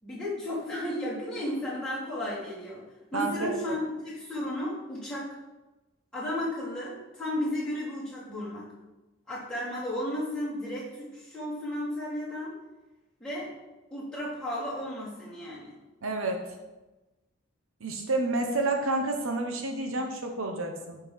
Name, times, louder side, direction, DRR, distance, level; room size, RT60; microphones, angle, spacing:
voice 1, 0.0-2.8 3.1-5.4 6.1-8.7 9.3-12.5 13.2-13.5 13.9-15.8, left 1 dB, 5° left, -10 dB, 3.5 m, -34 dB
voice 2, 3.1-3.5 16.0-16.5 17.8-21.0, right 2 dB, 70° right, 3 dB, 1.0 m, -29 dB
9.4 x 5.2 x 5.7 m, 1.1 s
head